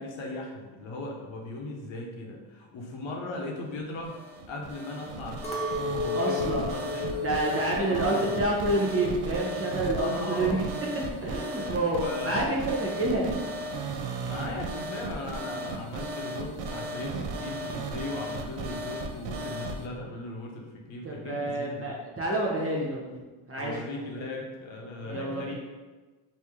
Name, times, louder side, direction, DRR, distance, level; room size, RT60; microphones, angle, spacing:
voice 1, 0.0-4.1 4.5-7.2 7.7-8.3 9.9-10.7 11.3-12.7 14.2-21.9 23.5-25.5, left 2 dB, 70° left, 0 dB, 0.8 m, -38 dB
sound 1, 4.0-19.8, right 2 dB, 65° right, 0.5 m, -35 dB
Chink clink, 5.4-9.8 10.2-10.8, left 4 dB, 15° left, 0.4 m, -34 dB
voice 2, 6.1-6.7 7.2-10.6 11.2-13.4 21.0-23.2 23.5-23.7 25.0-25.5, right 2 dB, 30° right, -3 dB, 0.8 m, -28 dB
3.1 x 2.8 x 3.5 m, 1.3 s
cardioid pair, 120°, 48 cm